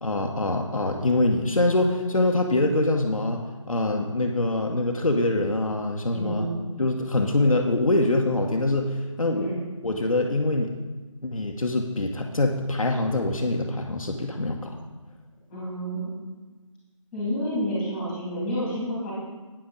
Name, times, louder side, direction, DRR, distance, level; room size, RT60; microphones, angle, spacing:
voice 1, 0.0-3.4 3.7-6.5 6.8-9.5 9.8-10.7 11.2-14.8, left 2 dB, 80° left, 2 dB, 1.0 m, -24 dB
voice 2, 6.1-6.6 9.3-9.6 15.5-16.1 17.1-19.1, equal, 5° left, -7 dB, 2.5 m, -29 dB
8.8 x 8.8 x 3.9 m, 1.3 s
figure-of-eight pair, 160°, 17 cm